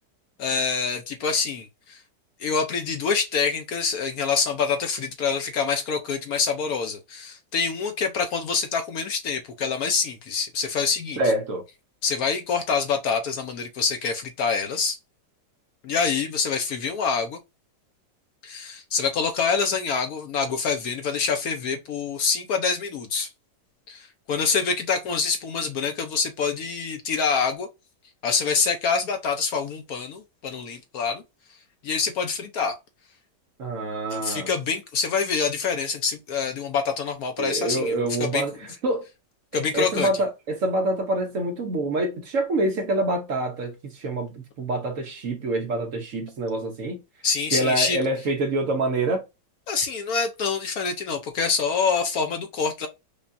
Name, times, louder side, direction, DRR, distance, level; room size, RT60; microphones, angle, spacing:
voice 1, 0.4-2.0 2.4-11.2 12.0-15.0 15.8-17.4 18.4-23.3 23.9-27.7 28.2-31.2 31.8-32.8 34.1-38.4 39.5-40.1 47.2-48.0 49.7-52.9, left 5 dB, 65° left, 1.0 m, -26 dB
voice 2, 11.2-11.6 33.6-34.5 37.4-38.5 38.8-39.0 39.5-47.0 47.5-49.2, right 2 dB, 55° right, 1.0 m, -26 dB
5.2 x 2.3 x 2.6 m
omnidirectional pair, 1.9 m